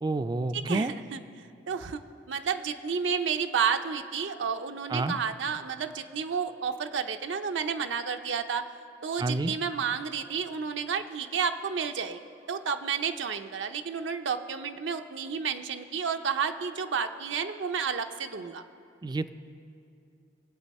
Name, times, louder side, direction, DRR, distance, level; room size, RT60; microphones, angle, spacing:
voice 1, 0.0-0.9 4.9-5.2 9.2-9.5 19.0-19.3, right 2 dB, 20° right, 12 dB, 0.3 m, -29 dB
voice 2, 0.5-2.0 2.3-8.7 9.0-12.2 12.5-18.6, right 6 dB, 75° right, 6 dB, 0.6 m, -31 dB
22.0 x 8.2 x 4.2 m, 2.5 s
head